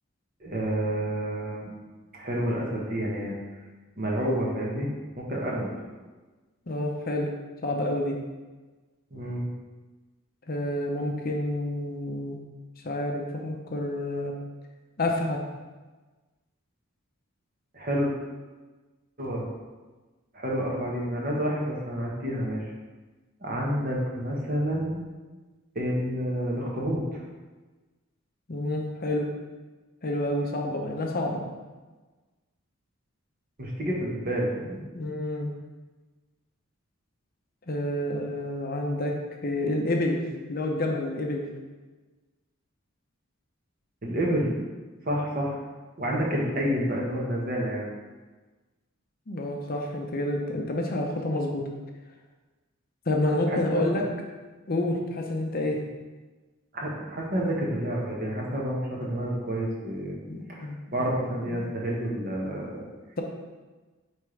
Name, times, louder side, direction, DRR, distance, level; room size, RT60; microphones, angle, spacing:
voice 1, 0.4-1.7 2.1-3.3 4.0-4.9 5.2-5.7 9.1-9.5 17.7-18.1 19.2-19.5 20.3-22.6 23.4-25.0 25.7-27.2 33.6-34.8 44.0-44.5 45.1-45.6 46.0-47.9 53.5-54.0 56.7-60.2 60.5-62.8, equal, 45° right, -3 dB, 1.3 m, -29 dB
voice 2, 6.7-7.3 7.6-8.2 10.5-12.4 12.8-14.3 15.0-15.4 28.5-29.3 30.0-31.4 34.9-35.5 37.7-39.2 39.4-40.2 40.5-41.4 49.3-51.7 53.1-54.0 54.7-55.8 60.3-60.8 61.5-61.6, left 1 dB, 45° left, 1 dB, 0.7 m, -28 dB
8.7 x 3.4 x 3.3 m, 1.3 s
head